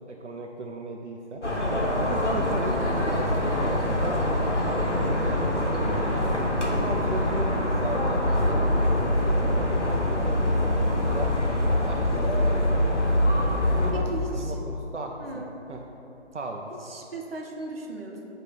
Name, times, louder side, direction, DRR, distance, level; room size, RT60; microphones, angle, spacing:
voice 1, 0.1-1.4 2.0-4.2 4.7-6.3 6.7-11.3 11.7-13.1 13.7-14.1 14.4-15.4 15.7-15.8 16.3-16.7, right 3 dB, 80° right, 1 dB, 0.6 m, -37 dB
sound 1, 1.4-13.9, left 1 dB, 80° left, 1.3 m, -24 dB
voice 2, 13.9-14.5 15.2-15.5 16.8-18.2, right 2 dB, 55° right, 0 dB, 1.0 m, -37 dB
7.3 x 3.2 x 5.2 m, 3.0 s
figure-of-eight pair, 150°, 35 cm